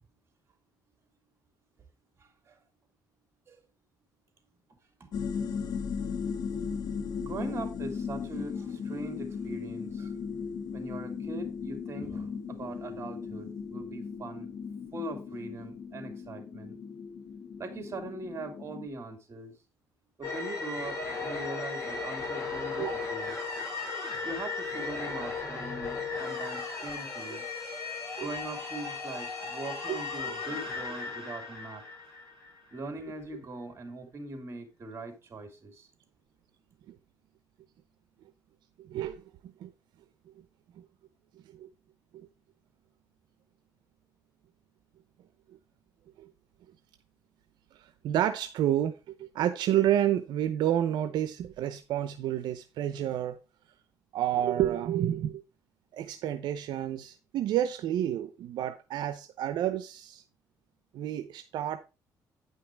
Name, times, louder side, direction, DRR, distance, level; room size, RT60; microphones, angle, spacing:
voice 1, 2.2-2.6 3.5-3.6 5.0-5.1 7.2-10.1 10.7-14.5 14.9-16.8 17.6-19.5 20.2-23.4 24.2-27.5 28.2-31.8 32.7-35.9, right 2 dB, 35° right, 3.1 m, -41 dB
sound 1, 5.1-18.9, left 6 dB, 70° left, 1.3 m, -37 dB
sound 2, 20.2-32.7, left 4 dB, 40° left, 6.1 m, -36 dB
voice 2, 38.9-39.2 39.6-39.7 41.6-41.7 48.0-48.9 49.2-53.4 54.1-55.4 55.9-60.2 60.9-61.8, right 11 dB, 80° right, 0.8 m, -29 dB
9.5 x 5.7 x 4.6 m
cardioid pair, 110°, 7 cm